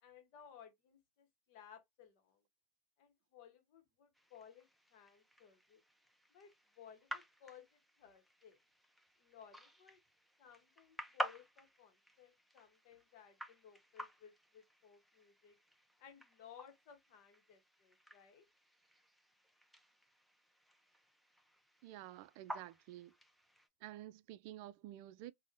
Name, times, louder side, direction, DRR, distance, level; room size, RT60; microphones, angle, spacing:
voice 1, 0.0-2.4 3.0-5.8 6.3-8.6 9.2-10.0 10.4-15.6 16.0-18.4, left 8 dB, 55° left, 0.9 m, -60 dB
sound 1, 4.1-23.7, equal, ahead, 0.5 m, -51 dB
voice 2, 21.8-23.1 23.8-25.3, right 14 dB, 55° right, 0.3 m, -51 dB
3.6 x 2.1 x 2.5 m
supercardioid pair, 130°, 0 cm